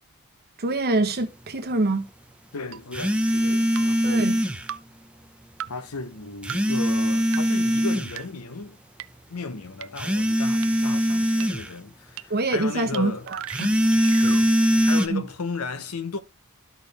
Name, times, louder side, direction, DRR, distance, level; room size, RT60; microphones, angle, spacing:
voice 1, 0.6-2.0 4.0-4.3 12.3-13.7 15.1-15.2, right 2 dB, 45° right, 1.1 m, -25 dB
voice 2, 2.5-4.3 5.7-8.8 9.3-13.3 14.2-14.5 14.8-16.2, left 4 dB, 75° left, 0.9 m, -35 dB
sound 1, 2.7-2.8 3.7-3.9 4.7-4.8 5.6-5.7 6.5-6.6 7.3-7.4 8.2-8.3 9.0-9.1 9.8-9.9 10.6-10.7 11.4-11.5 12.2-12.3 12.9-13.0 13.3-14.4, right 11 dB, 60° right, 0.5 m, -35 dB
sound 2, 2.9-4.7 6.4-8.2 10.0-11.7 13.5-15.1, equal, 5° right, 0.6 m, -22 dB
12.5 x 4.4 x 3.4 m
head